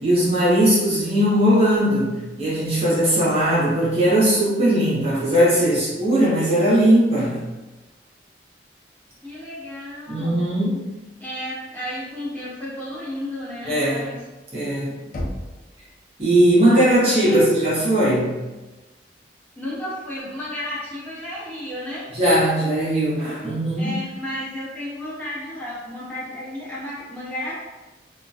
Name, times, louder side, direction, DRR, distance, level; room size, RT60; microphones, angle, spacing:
voice 1, 0.0-7.4 10.1-10.9 13.6-14.1 14.5-14.9 16.2-18.3 22.1-24.0, right 1 dB, 35° right, -8 dB, 0.7 m, -19 dB
voice 2, 9.2-10.5 11.2-14.2 16.6-17.4 19.6-22.1 23.8-27.5, left 1 dB, 10° left, -9 dB, 0.8 m, -33 dB
Knock, 15.1-16.0, left 1 dB, 45° left, 0.4 m, -32 dB
2.3 x 2.1 x 2.6 m, 1.1 s
head